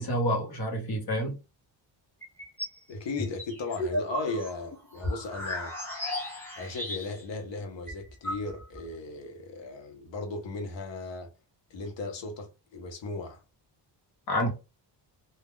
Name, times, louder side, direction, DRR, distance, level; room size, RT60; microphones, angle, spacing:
voice 1, 0.0-1.4 14.3-14.5, equal, 55° left, 1.1 m, -28 dB
sound 1, 2.2-2.8 3.2-7.3 7.6-7.7 7.9-8.8, left 1 dB, 5° left, 0.8 m, -35 dB
voice 2, 2.9-5.7 6.6-11.3 11.7-13.4, left 3 dB, 75° left, 0.9 m, -36 dB
2.3 x 2.2 x 3.5 m
wide cardioid pair, 125°, 44 cm